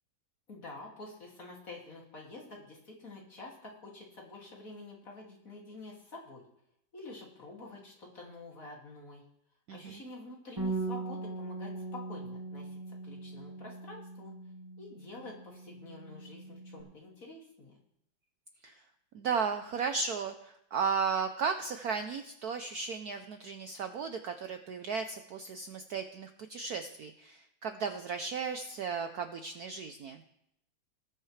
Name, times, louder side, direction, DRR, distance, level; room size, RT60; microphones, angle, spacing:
voice 1, 0.5-6.4 6.9-9.2 9.7-14.3 14.8-17.8, left 2 dB, 40° left, -2 dB, 2.8 m, -48 dB
voice 2, 9.7-10.0 18.6-18.8 19.1-30.2, right 5 dB, 70° right, 7 dB, 0.9 m, -35 dB
Bass guitar, 10.6-16.8, right 3 dB, 15° right, 1.8 m, -40 dB
19.0 x 8.9 x 3.3 m, 0.78 s
omnidirectional pair, 2.2 m